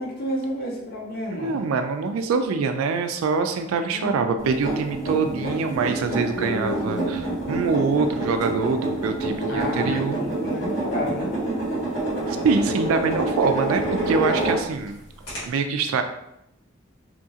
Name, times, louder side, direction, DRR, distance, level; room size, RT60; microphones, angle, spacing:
voice 1, 0.0-1.6 3.9-4.4 5.2-5.6 6.0-7.4 9.5-11.3, left 1 dB, 45° left, -2 dB, 0.6 m, -31 dB
voice 2, 1.3-7.2 7.5-10.2 12.3-15.0 15.4-16.0, right 4 dB, 90° right, 7 dB, 0.3 m, -24 dB
sound 1, 4.4-14.9 15.3-15.4, right 2 dB, 75° left, 1.4 m, -27 dB
2.8 x 2.4 x 2.7 m, 0.81 s
head